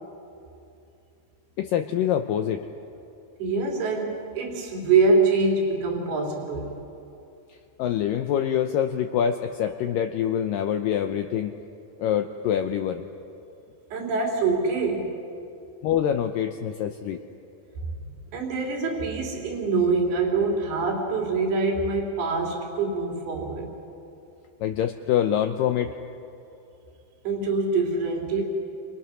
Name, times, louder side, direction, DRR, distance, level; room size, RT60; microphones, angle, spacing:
voice 1, 1.6-2.7 7.8-11.5 12.0-13.0 15.8-17.2 24.6-25.9, left 9 dB, 75° left, 6 dB, 2.1 m, -25 dB
voice 2, 3.4-6.7 13.9-15.2 18.3-23.7 27.2-28.4, right 3 dB, 75° right, 0 dB, 5.0 m, -24 dB
29.5 x 26.5 x 6.3 m, 2.7 s
omnidirectional pair, 4.6 m